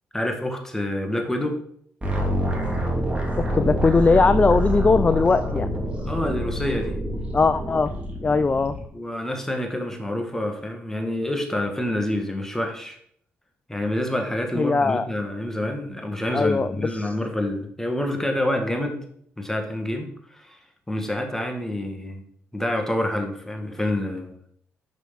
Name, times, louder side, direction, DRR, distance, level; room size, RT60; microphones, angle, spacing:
voice 1, 0.1-1.6 6.0-7.0 8.9-13.0 13.7-19.0 19.4-20.6 20.9-22.2 22.5-24.5, left 1 dB, 10° left, 3 dB, 2.0 m, -27 dB
sound 1, 2.0-8.8, right 1 dB, 20° right, 2.7 m, -26 dB
voice 2, 3.4-5.7 7.3-7.9 8.2-8.7 14.5-15.1 16.3-17.1, left 4 dB, 30° left, 12 dB, 0.4 m, -20 dB
6.3 x 5.4 x 5.8 m, 0.67 s
supercardioid pair, 55°, 5 cm